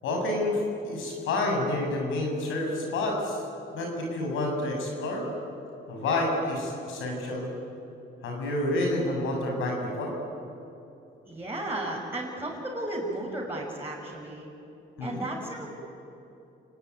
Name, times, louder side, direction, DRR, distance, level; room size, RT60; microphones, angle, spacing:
voice 1, 0.0-3.4 3.7-5.2 5.9-7.5 8.2-10.1 15.0-15.2, left 2 dB, 85° left, 1 dB, 7.2 m, -29 dB
voice 2, 11.2-14.5 15.0-15.7, right 1 dB, 10° right, -5 dB, 6.0 m, -34 dB
29.0 x 19.0 x 9.8 m, 2.8 s
cardioid pair, 90°, 20 cm